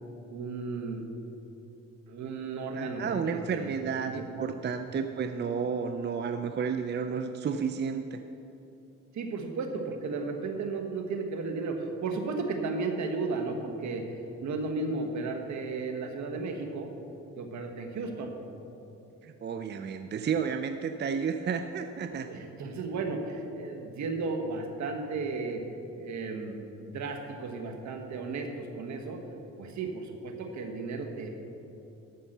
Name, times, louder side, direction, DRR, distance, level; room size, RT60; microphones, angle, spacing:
voice 1, 0.3-1.0 2.1-4.5 9.1-16.9 17.4-18.3 22.2-25.6 25.9-29.2 29.6-31.3, right 3 dB, 65° right, 4 dB, 1.5 m, -34 dB
voice 2, 2.7-8.2 19.2-22.3, right 6 dB, 35° right, 7 dB, 0.5 m, -32 dB
14.0 x 5.7 x 6.7 m, 2.8 s
cardioid pair, 90°, 30 cm